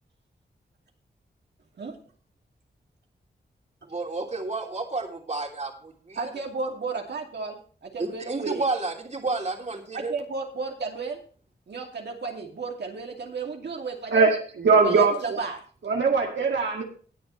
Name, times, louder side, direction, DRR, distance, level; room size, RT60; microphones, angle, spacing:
voice 1, 3.8-6.3 8.0-10.1, right 3 dB, 40° right, 2 dB, 2.9 m, -31 dB
voice 2, 6.2-8.7 9.9-11.2 11.7-14.1 14.8-15.6, right 4 dB, 75° right, 1 dB, 2.4 m, -33 dB
voice 3, 14.1-15.4 15.8-16.8, right 4 dB, 90° right, 1 dB, 2.1 m, -21 dB
20.5 x 6.9 x 3.2 m, 0.41 s
wide cardioid pair, 85°, 18 cm